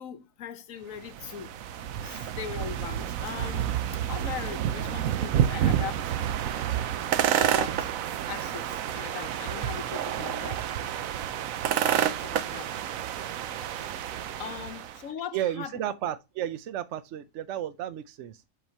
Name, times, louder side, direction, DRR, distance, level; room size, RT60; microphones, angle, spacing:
voice 1, 0.0-1.5 2.0-3.7 4.1-6.1 7.3-7.9 8.3-10.6 11.7-12.7 14.4-15.7, left 8 dB, 80° left, 1.1 m, -40 dB
sound 1, 1.0-15.0, right 10 dB, 90° right, 1.0 m, -29 dB
voice 2, 15.3-18.4, right 11 dB, 65° right, 0.8 m, -33 dB
7.4 x 5.0 x 2.7 m
omnidirectional pair, 1.4 m